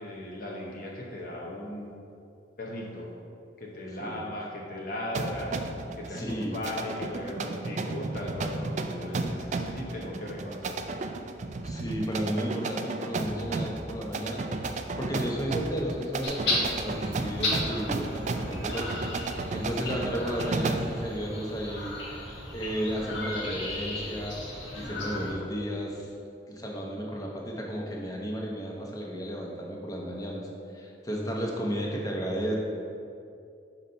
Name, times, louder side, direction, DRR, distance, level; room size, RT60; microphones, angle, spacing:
voice 1, 0.0-1.9 2.6-3.1 3.6-5.5 6.0-10.8, left 1 dB, 50° left, -3 dB, 0.9 m, -37 dB
sound 1, 5.1-21.0, right 3 dB, 40° right, 0.3 m, -33 dB
voice 2, 6.1-6.6 11.6-19.2 19.5-24.4 24.7-26.1 26.5-30.5 30.7-32.6, equal, 20° left, -1 dB, 0.8 m, -33 dB
sound 2, 16.2-25.3, left 2 dB, 85° left, 1.5 m, -35 dB
6.0 x 4.0 x 5.5 m, 2.5 s
head